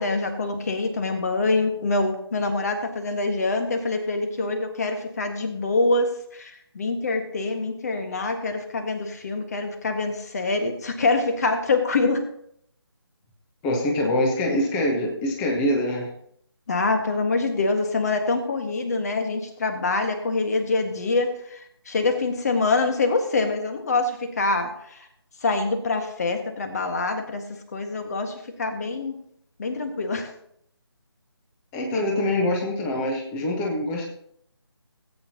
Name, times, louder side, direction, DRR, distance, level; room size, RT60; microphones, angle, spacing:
voice 1, 0.0-12.2 16.7-21.3 21.9-24.7 25.4-27.4 27.7-29.1 29.6-30.3, left 3 dB, 35° left, 6 dB, 1.7 m, -25 dB
voice 2, 13.6-16.1 31.7-34.1, left 1 dB, 10° left, 0 dB, 1.1 m, -24 dB
18.0 x 8.6 x 2.9 m, 0.68 s
figure-of-eight pair, 160°, 14 cm